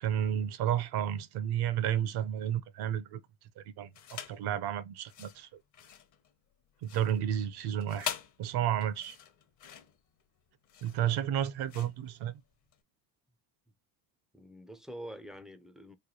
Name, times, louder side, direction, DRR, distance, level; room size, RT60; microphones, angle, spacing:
voice 1, 0.0-3.2 3.6-5.5 6.8-8.1 8.4-9.2 10.8-12.3, right 10 dB, 65° right, 0.7 m, -32 dB
sound 1, 3.9-4.5 5.0-12.8, left 8 dB, 45° left, 0.8 m, -44 dB
voice 2, 14.3-15.9, equal, ahead, 0.4 m, -46 dB
3.3 x 2.2 x 4.0 m
cardioid pair, 100°, 43 cm